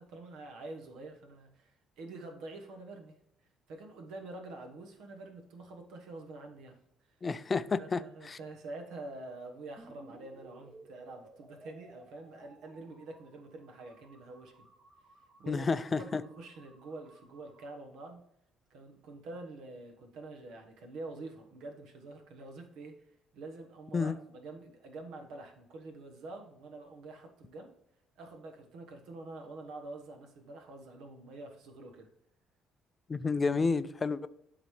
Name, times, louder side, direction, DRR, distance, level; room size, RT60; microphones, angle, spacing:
voice 1, 0.0-3.2 3.7-7.2 7.8-14.7 15.4-15.7 16.0-18.2 18.7-27.7 28.1-32.1, right 2 dB, 85° right, 1.2 m, -47 dB
voice 2, 7.2-8.0 8.3-8.4 15.5-16.2 23.9-24.1 33.1-34.3, left 4 dB, 25° left, 0.4 m, -30 dB
sound 1, 9.8-17.7, right 2 dB, 30° right, 1.1 m, -58 dB
11.5 x 4.0 x 3.2 m
cardioid pair, 130°, 0 cm